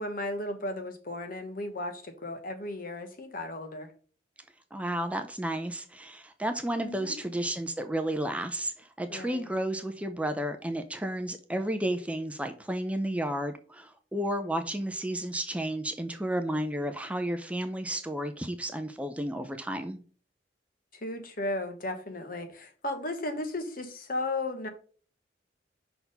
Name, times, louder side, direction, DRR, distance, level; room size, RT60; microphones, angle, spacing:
voice 1, 0.0-3.9 6.8-7.2 9.1-9.5 21.0-24.7, left 2 dB, 50° left, 1.2 m, -35 dB
voice 2, 4.7-20.0, right 1 dB, 5° right, 0.5 m, -32 dB
5.8 x 4.2 x 5.3 m
head